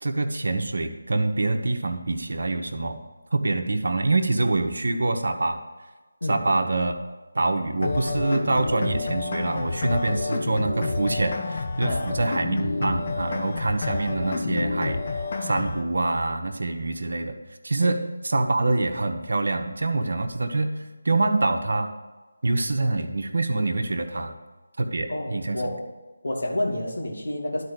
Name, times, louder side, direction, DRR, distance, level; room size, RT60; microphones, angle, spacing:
voice 1, 0.0-3.0 3.3-5.6 6.3-6.9 7.3-17.4 17.6-20.7 21.0-21.9 22.4-24.3 24.8-25.7, right 2 dB, 65° right, 5 dB, 1.1 m, -25 dB
sound 1, 7.8-15.8, left 3 dB, 40° left, 1.2 m, -29 dB
voice 2, 25.1-25.9 26.2-27.6, left 1 dB, 65° left, 0 dB, 2.2 m, -29 dB
11.5 x 4.5 x 6.6 m, 1.2 s
figure-of-eight pair, 160°, 0 cm